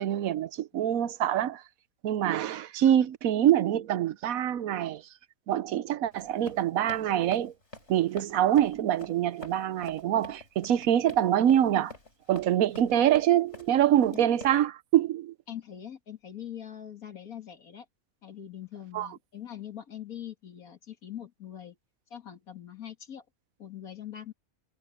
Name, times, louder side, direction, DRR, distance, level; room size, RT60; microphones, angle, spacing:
voice 1, 0.0-1.6 2.0-5.0 5.5-7.5 7.9-11.9 12.3-15.3 18.9-19.1, right 11 dB, 80° right, 1.1 m, -25 dB
Run, 6.1-14.6, left 3 dB, 50° left, 4.7 m, -47 dB
voice 2, 15.5-17.9 18.2-21.8 22.1-23.2 23.6-24.3, left 10 dB, 90° left, 2.5 m, -42 dB
omnidirectional pair, 1.5 m